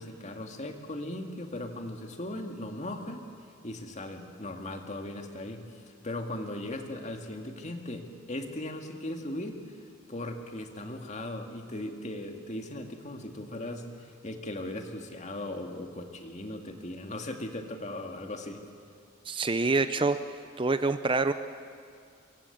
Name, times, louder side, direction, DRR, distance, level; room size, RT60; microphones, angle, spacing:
voice 1, 0.0-3.3 3.6-9.8 10.1-18.6, left 1 dB, 35° left, 4 dB, 2.2 m, -38 dB
voice 2, 19.3-20.2 20.6-21.3, right 3 dB, 25° right, 11 dB, 0.6 m, -26 dB
25.5 x 22.5 x 8.7 m, 2.3 s
head